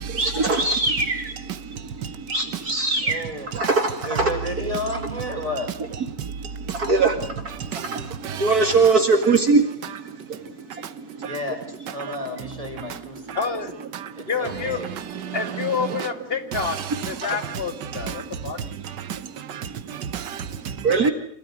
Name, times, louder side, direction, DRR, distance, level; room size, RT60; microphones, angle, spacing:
voice 1, 0.0-3.2 3.5-4.3 6.2-11.3 17.2-17.4 18.3-18.4 18.8-18.9 19.9-20.0 20.5-21.1, right 3 dB, 55° right, 2.6 m, -23 dB
voice 2, 3.0-3.5 4.0-5.7 11.2-11.6 11.9-13.4 14.2-14.9, left 1 dB, 20° right, 4.7 m, -31 dB
voice 3, 7.7-8.5 11.2-11.3 14.0-14.1 15.3-15.4 17.9-18.2 18.8-20.9, right 8 dB, 70° right, 1.8 m, -33 dB
voice 4, 13.4-13.7 14.3-14.8 15.3-16.8 17.1-18.6, left 5 dB, 30° left, 2.4 m, -28 dB
27.0 x 17.0 x 9.7 m
omnidirectional pair, 1.9 m